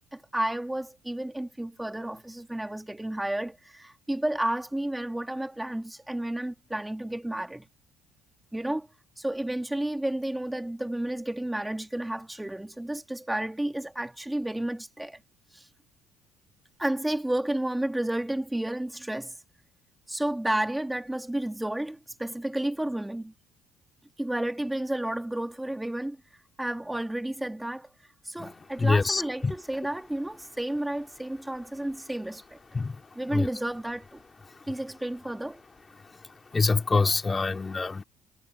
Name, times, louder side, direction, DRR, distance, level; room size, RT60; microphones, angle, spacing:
voice 1, 0.0-7.6 8.5-8.9 9.2-15.2 15.5-15.7 16.8-19.4 20.1-23.3 24.2-26.2 26.6-27.9 28.2-32.6 33.2-34.2 34.7-35.6, right 1 dB, 10° right, 1.8 m, -31 dB
voice 2, 28.8-29.5 32.7-33.0 33.3-33.5 36.5-38.0, left 4 dB, 25° left, 2.9 m, -25 dB
supercardioid pair, 75°, 0 cm